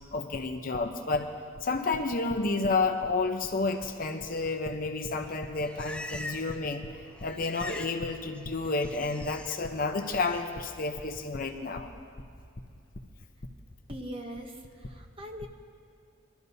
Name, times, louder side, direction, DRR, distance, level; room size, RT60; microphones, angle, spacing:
voice 1, 0.1-1.3 1.6-6.9 7.2-11.9, left 3 dB, 45° left, 5 dB, 0.7 m, -30 dB
Livestock farm animals working animals, 5.2-6.7 6.9-8.0 8.3-9.6 10.0-10.4, left 1 dB, 5° left, 0.4 m, -43 dB
voice 2, 13.9-14.6 14.8-15.5, equal, 25° right, 3 dB, 0.9 m, -40 dB
21.5 x 12.5 x 2.7 m, 2.5 s
head